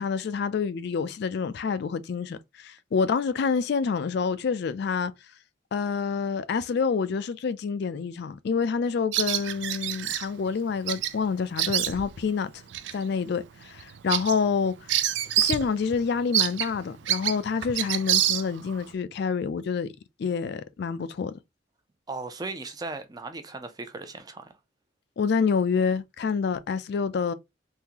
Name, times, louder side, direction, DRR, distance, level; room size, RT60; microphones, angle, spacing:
voice 1, 0.0-5.1 5.7-12.5 12.9-15.0 15.4-19.9 20.2-21.4 25.2-27.3, left 5 dB, 60° left, 0.4 m, -27 dB
Bird vocalization bird call bird song, 9.1-10.2 10.9-11.1 11.4-12.2 12.7-12.9 13.4-13.5 13.8-15.7 15.9-16.0 16.3-18.8, right 12 dB, 75° right, 0.4 m, -26 dB
voice 2, 22.1-24.5, right 3 dB, 20° right, 0.5 m, -37 dB
3.7 x 2.7 x 2.9 m
head